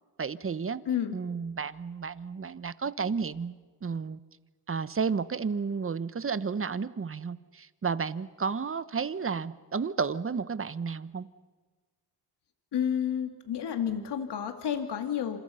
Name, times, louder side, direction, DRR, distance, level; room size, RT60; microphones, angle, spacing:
voice 1, 0.2-0.8 1.1-3.5 3.8-4.2 4.7-11.3, right 5 dB, 30° right, 15 dB, 1.1 m, -32 dB
voice 2, 12.7-15.4, left 9 dB, 80° left, 7 dB, 2.4 m, -30 dB
28.5 x 27.5 x 5.7 m, 1.4 s
cardioid pair, 90°, 40 cm